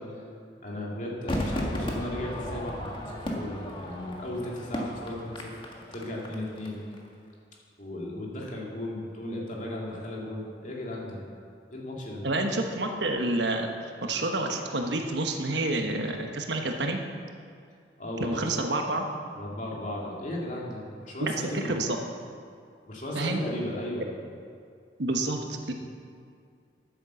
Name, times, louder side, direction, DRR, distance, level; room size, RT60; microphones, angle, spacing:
voice 1, 0.6-6.8 7.8-11.2 11.7-12.2 18.0-18.6 19.3-21.8 22.9-24.1, left 1 dB, 45° left, -3 dB, 2.5 m, -36 dB
Crowd / Fireworks, 1.3-6.7 6.9-7.0, equal, 30° left, 1.6 m, -34 dB
voice 2, 12.2-13.7 14.0-17.0 18.2-19.0 21.2-22.0 23.1-23.4 25.0-25.7, right 2 dB, 80° right, 4 dB, 1.2 m, -28 dB
10.5 x 9.2 x 6.9 m, 2.3 s
head